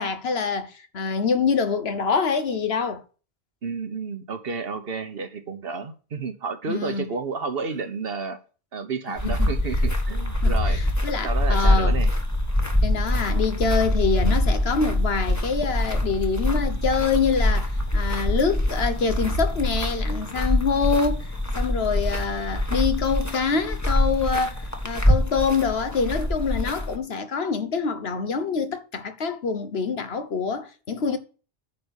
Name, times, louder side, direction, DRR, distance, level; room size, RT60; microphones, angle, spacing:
voice 1, 0.0-3.0 6.7-7.1 9.4-9.5 10.4-12.0 12.8-21.3 21.5-31.2, left 5 dB, 70° left, 1.4 m, -25 dB
voice 2, 3.6-8.4 8.7-10.8 11.2-12.1, right 4 dB, 65° right, 1.2 m, -31 dB
sound 1, 9.2-26.9, left 1 dB, 15° left, 1.4 m, -24 dB
9.6 x 4.4 x 7.1 m
omnidirectional pair, 1.1 m